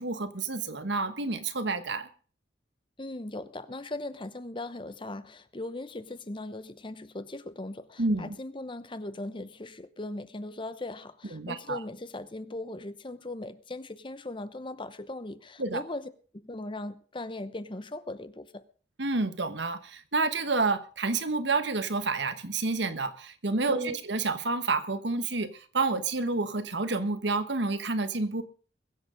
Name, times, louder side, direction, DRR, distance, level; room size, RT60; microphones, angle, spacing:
voice 1, 0.0-2.1 8.0-8.3 11.3-11.8 15.6-15.8 19.0-28.4, right 3 dB, 75° right, 1.3 m, -29 dB
voice 2, 3.0-18.6 23.7-24.0, left 2 dB, 30° left, 0.8 m, -39 dB
22.0 x 7.9 x 5.1 m
head